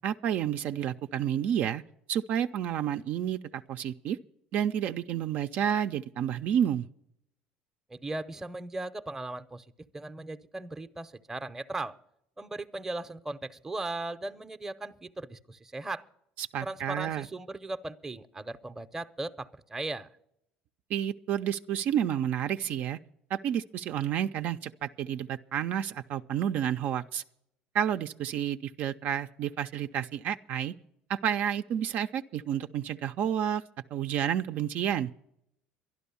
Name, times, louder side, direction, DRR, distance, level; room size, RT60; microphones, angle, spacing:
voice 1, 0.0-1.8 2.1-4.2 4.5-6.9 16.4-17.3 20.9-23.0 23.3-27.2 27.7-30.7 31.1-33.6 33.9-35.1, right 9 dB, 55° right, 8 dB, 0.4 m, -30 dB
voice 2, 7.9-9.6 9.9-12.0 12.4-16.0 16.6-20.1, right 2 dB, 10° right, 10 dB, 0.7 m, -37 dB
12.0 x 11.5 x 7.0 m, 0.76 s
cardioid pair, 120°, 3 cm